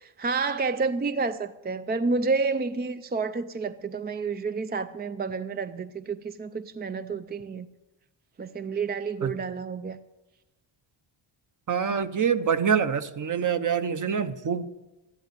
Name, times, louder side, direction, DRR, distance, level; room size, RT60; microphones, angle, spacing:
voice 1, 0.0-7.7 8.4-10.0, right 4 dB, 20° right, 0.4 m, -29 dB
voice 2, 11.7-14.7, right 7 dB, 40° right, 0.8 m, -25 dB
13.5 x 11.0 x 6.8 m
cardioid pair, 100°, 48 cm